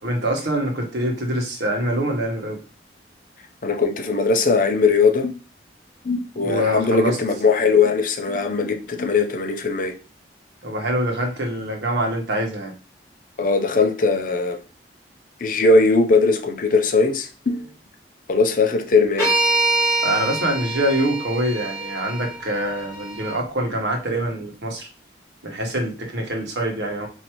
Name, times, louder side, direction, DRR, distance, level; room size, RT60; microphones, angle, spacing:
voice 1, 0.0-2.6 6.4-7.2 10.6-12.7 20.0-24.9 25.4-27.1, right 1 dB, 75° right, 1.1 m, -24 dB
voice 2, 3.6-5.4 6.0-9.9 13.4-14.6 15.4-17.7 18.3-19.3, left 4 dB, 50° left, 0.6 m, -19 dB
sound 1, 19.2-23.4, right 2 dB, 15° left, 2.2 m, -25 dB
4.5 x 2.7 x 3.0 m
head